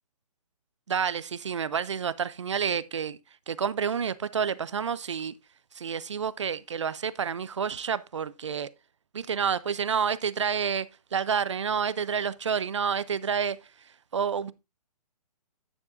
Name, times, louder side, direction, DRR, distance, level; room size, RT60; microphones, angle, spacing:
voice 1, 0.9-3.2 3.5-5.3 5.7-8.7 9.1-13.6 14.1-14.5, right 7 dB, 50° right, 0.4 m, -29 dB
9.7 x 7.2 x 2.5 m
hypercardioid pair, 180°, 20 cm